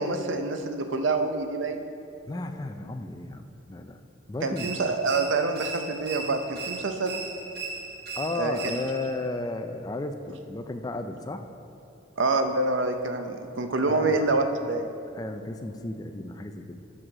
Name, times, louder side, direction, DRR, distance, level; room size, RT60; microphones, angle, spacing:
voice 1, 0.0-1.9 4.4-7.2 8.4-8.8 12.2-14.9, right 3 dB, 75° right, 7 dB, 0.6 m, -26 dB
voice 2, 2.3-4.0 4.3-4.7 8.1-11.4 13.9-14.3 15.2-16.8, left 2 dB, 20° left, 7 dB, 0.4 m, -34 dB
sound 1, 4.6-9.2, right 4 dB, 50° right, 1.0 m, -37 dB
7.5 x 6.3 x 6.1 m, 2.8 s
head